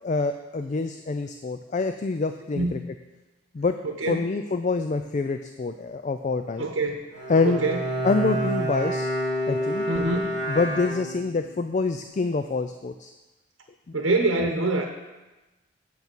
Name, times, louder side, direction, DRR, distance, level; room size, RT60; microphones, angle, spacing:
voice 1, 0.0-2.8 3.5-3.7 4.1-6.7 7.3-7.6 8.0-9.1 9.5-9.9 10.5-13.1 13.9-14.0, left 3 dB, 35° left, 8 dB, 0.3 m, -26 dB
voice 2, 3.8-4.3 6.6-7.0 7.4-7.8 9.5-10.3 13.9-14.9, right 2 dB, 90° right, 4 dB, 0.9 m, -25 dB
Bowed string instrument, 7.1-11.5, right 1 dB, 60° left, 3.7 m, -28 dB
8.2 x 7.0 x 6.1 m, 1.1 s
head